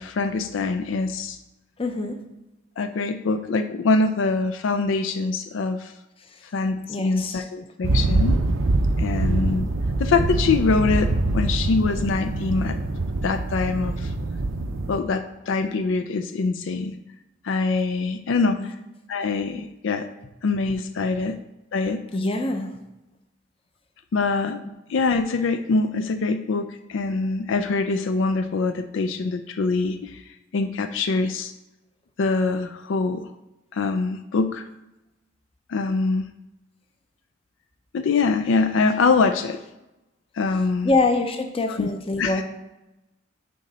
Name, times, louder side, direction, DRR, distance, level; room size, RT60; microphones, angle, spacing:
voice 1, 0.0-1.4 2.8-5.9 6.5-8.4 9.0-9.7 10.0-12.8 13.2-14.1 14.9-17.0 17.4-18.7 19.1-20.1 20.4-21.4 21.7-22.0 24.1-24.6 24.9-30.2 30.5-31.5 32.2-33.2 33.7-34.7 35.7-36.3 37.9-39.6 40.4-40.9 41.7-41.9 42.2-42.4, left 4 dB, 70° left, 9 dB, 0.4 m, -24 dB
voice 2, 1.8-2.2 6.9-7.4 18.6-18.7 22.1-22.7 40.8-42.4, left 2 dB, 25° left, 6 dB, 0.6 m, -24 dB
sound 1, 7.8-15.0, right 2 dB, 75° right, 0.6 m, -24 dB
6.5 x 4.1 x 5.4 m, 0.96 s
head